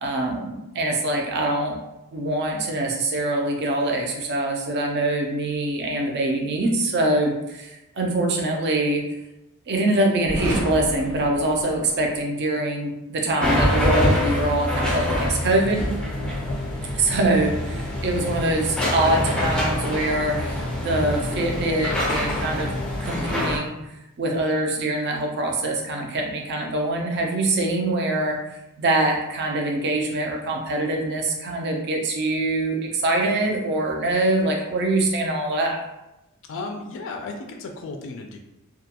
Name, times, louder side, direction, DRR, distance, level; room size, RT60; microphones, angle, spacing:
voice 1, 0.0-1.8 2.1-9.0 9.7-15.9 16.9-22.7 23.0-23.7 24.2-35.8, right 2 dB, 50° right, 1 dB, 0.4 m, -24 dB
sound 1, 10.2-12.2, right 1 dB, 85° right, 0.7 m, -31 dB
sound 2, 13.4-23.6, left 1 dB, 5° left, 0.5 m, -25 dB
voice 2, 36.5-38.4, left 3 dB, 60° left, 3 dB, 0.3 m, -34 dB
2.3 x 2.2 x 2.7 m, 0.93 s
head